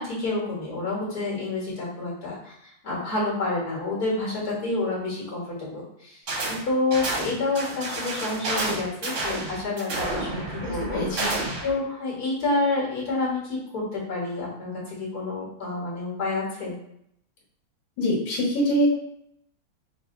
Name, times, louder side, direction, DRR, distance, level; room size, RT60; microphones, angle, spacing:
voice 1, 0.0-6.2 6.5-11.3 11.6-16.7, left 2 dB, 50° left, -5 dB, 2.1 m, -29 dB
sound 1, 6.3-6.6 6.9-11.7, right 2 dB, 50° right, 1.0 m, -30 dB
voice 2, 10.6-11.3 18.0-18.9, equal, 65° left, -3 dB, 2.0 m, -24 dB
5.0 x 2.8 x 3.9 m, 0.74 s
omnidirectional pair, 2.3 m